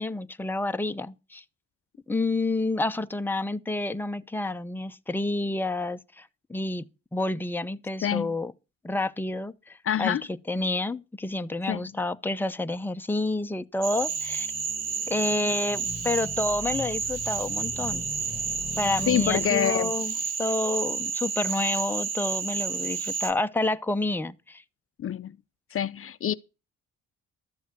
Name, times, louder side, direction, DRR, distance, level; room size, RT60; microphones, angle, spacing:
voice 1, 0.0-1.4 2.1-6.8 7.1-8.5 8.8-10.2 10.5-14.5 15.1-18.1 18.8-20.1 20.4-24.6, left 2 dB, 5° left, 0.8 m, -29 dB
voice 2, 8.0-8.4 9.8-10.3 11.7-11.9 19.1-19.9 25.0-25.4 25.7-26.3, left 10 dB, 45° left, 0.6 m, -26 dB
sound 1, 13.8-20.1, left 5 dB, 25° left, 1.6 m, -42 dB
Cricket / Frog, 13.8-23.3, right 5 dB, 55° right, 2.0 m, -30 dB
13.0 x 7.1 x 6.1 m
cardioid pair, 90°, 30 cm